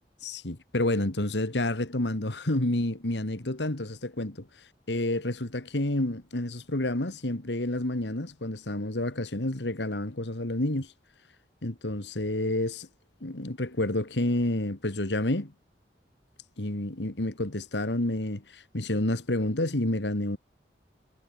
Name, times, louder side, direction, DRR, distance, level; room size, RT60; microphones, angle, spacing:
voice 1, 0.2-4.5 4.9-10.9 11.6-12.9 13.2-15.5 16.6-20.4, left 1 dB, 80° left, 2.3 m, -29 dB
head